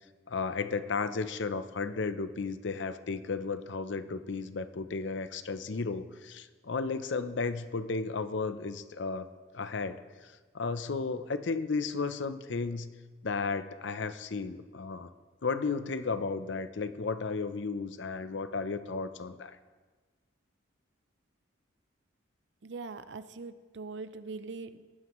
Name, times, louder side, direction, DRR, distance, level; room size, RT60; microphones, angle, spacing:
voice 1, 0.3-9.3 9.5-12.9 13.2-15.1 15.4-19.6, left 4 dB, 60° left, 11 dB, 0.6 m, -34 dB
voice 2, 22.6-24.8, right 4 dB, 60° right, 12 dB, 0.6 m, -42 dB
19.5 x 9.5 x 3.1 m, 1.4 s
head